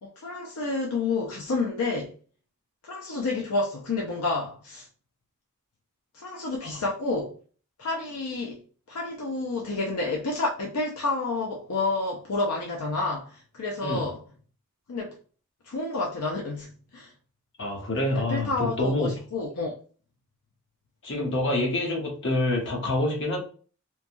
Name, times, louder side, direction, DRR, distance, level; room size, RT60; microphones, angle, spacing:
voice 1, 0.0-2.1 2.8-4.9 6.1-7.3 7.8-8.6 8.9-14.2 14.9-15.1 15.7-17.1 18.1-19.7, left 3 dB, 80° left, 0.5 m, -29 dB
voice 2, 17.6-19.2 21.0-23.4, left 1 dB, 55° left, 1.0 m, -27 dB
3.1 x 2.2 x 2.5 m
head